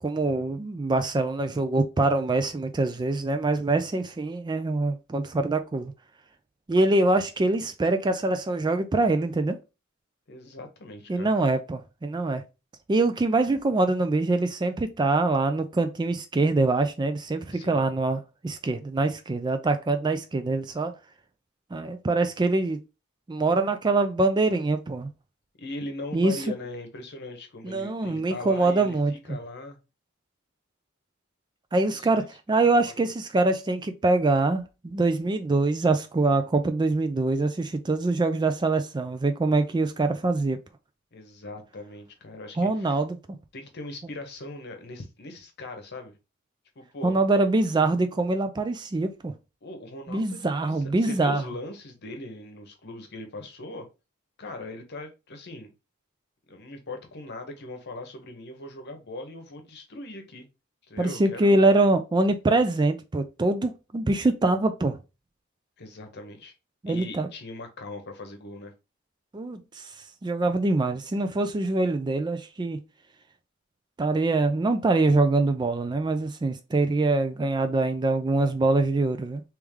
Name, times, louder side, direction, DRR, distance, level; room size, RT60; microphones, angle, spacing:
voice 1, 0.0-5.9 6.7-9.6 11.1-12.4 12.9-20.9 21.7-22.8 23.3-25.1 26.1-26.4 27.6-29.1 31.7-40.6 42.6-43.2 47.0-49.3 50.1-51.4 61.0-65.0 66.8-67.3 69.3-69.9 70.2-72.8 74.0-79.4, right 2 dB, 20° right, 0.3 m, -24 dB
voice 2, 10.3-11.3 17.5-17.9 25.6-29.8 31.9-32.1 32.6-33.0 41.1-43.0 43.5-46.2 46.8-47.2 49.6-53.9 54.4-55.7 56.5-60.5 60.9-61.6 65.8-66.5 66.9-68.7, left 2 dB, 55° left, 0.9 m, -40 dB
3.2 x 3.1 x 3.5 m
head